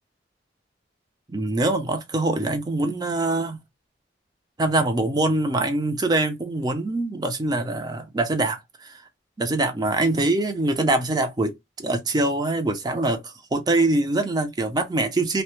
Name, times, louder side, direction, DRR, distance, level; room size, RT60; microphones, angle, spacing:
voice 1, 1.3-3.6 4.6-8.9 9.4-15.4, right 2 dB, 20° right, 0.4 m, -24 dB
2.1 x 2.0 x 2.8 m
head